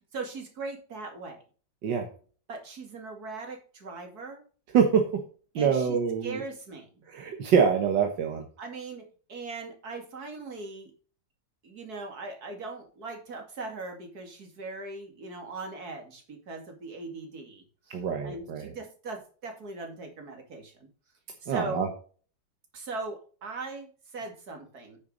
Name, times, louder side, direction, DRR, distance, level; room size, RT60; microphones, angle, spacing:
voice 1, 0.1-1.4 2.5-4.4 5.5-7.0 8.6-10.9 11.6-20.9 21.4-21.9 22.7-25.0, right 3 dB, 60° right, 3 dB, 2.9 m, -40 dB
voice 2, 4.7-5.2 5.6-6.4 7.1-8.5 17.9-18.7 21.5-21.9, right 6 dB, 80° right, 4 dB, 1.9 m, -25 dB
9.4 x 6.6 x 4.0 m, 0.40 s
omnidirectional pair, 1.9 m